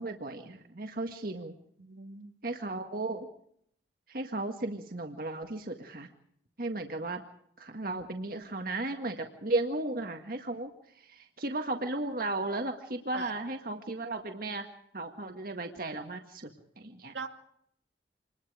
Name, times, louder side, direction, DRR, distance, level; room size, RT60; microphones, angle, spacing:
voice 1, 0.0-1.5 2.4-3.3 4.1-6.1 6.6-7.2 7.6-14.7 14.9-17.1, right 2 dB, 55° right, 5 dB, 1.8 m, -35 dB
voice 2, 1.8-2.3 13.1-13.3 17.1-17.3, right 4 dB, 85° right, 4 dB, 2.8 m, -40 dB
27.5 x 21.0 x 5.0 m, 0.69 s
head